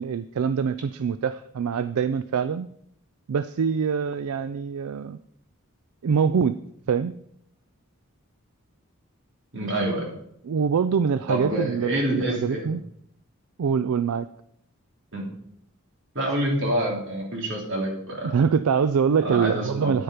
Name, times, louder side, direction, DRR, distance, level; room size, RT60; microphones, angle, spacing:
voice 1, 0.0-2.7 3.3-5.2 6.0-6.6 6.9-7.1 10.4-12.8 13.6-14.3 18.2-20.0, right 6 dB, 80° right, 13 dB, 0.4 m, -24 dB
voice 2, 9.5-10.1 11.3-12.8 15.1-15.3 16.1-18.3 19.2-20.0, right 1 dB, 60° right, -1 dB, 3.0 m, -27 dB
9.5 x 8.7 x 5.0 m, 0.73 s
head